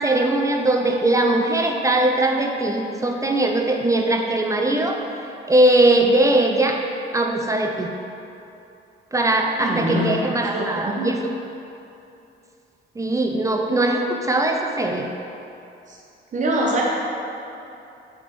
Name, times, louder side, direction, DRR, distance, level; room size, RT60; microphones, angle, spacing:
voice 1, 0.0-5.0 5.5-6.8 7.1-7.9 9.1-11.2 13.0-15.1, right 1 dB, 15° right, 2 dB, 0.3 m, -20 dB
voice 2, 9.5-10.0 10.3-11.1 15.9-16.0 16.3-16.8, right 1 dB, 40° right, -3 dB, 0.8 m, -24 dB
5.0 x 3.4 x 3.0 m, 2.7 s
cardioid pair, 90°, 20 cm